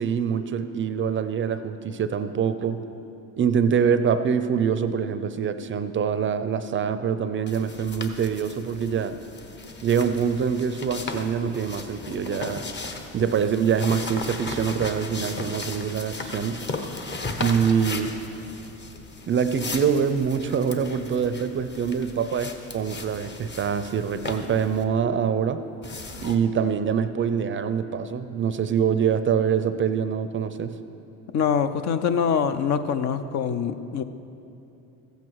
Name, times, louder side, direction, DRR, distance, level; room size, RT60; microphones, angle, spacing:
voice 1, 0.0-2.8 3.4-9.2 9.8-12.6 13.1-16.6 17.4-18.2 19.3-25.6 26.2-30.8, right 7 dB, 35° right, 11 dB, 0.5 m, -25 dB
sound 1, 7.5-24.8 25.8-26.4, left 3 dB, 30° left, 1.0 m, -36 dB
voice 2, 31.3-34.0, left 7 dB, 50° left, 10 dB, 0.6 m, -24 dB
15.0 x 8.2 x 4.6 m, 2.8 s
supercardioid pair, 90°, 36 cm